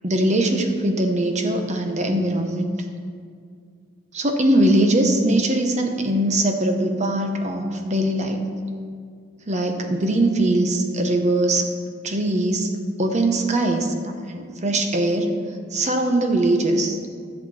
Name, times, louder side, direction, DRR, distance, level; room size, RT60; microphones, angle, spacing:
voice 1, 0.0-2.7 4.1-8.4 9.5-11.7 12.0-12.7 13.0-15.3 15.7-17.0, right 1 dB, 35° right, 4 dB, 1.0 m, -21 dB
13.5 x 6.8 x 4.3 m, 2.1 s
head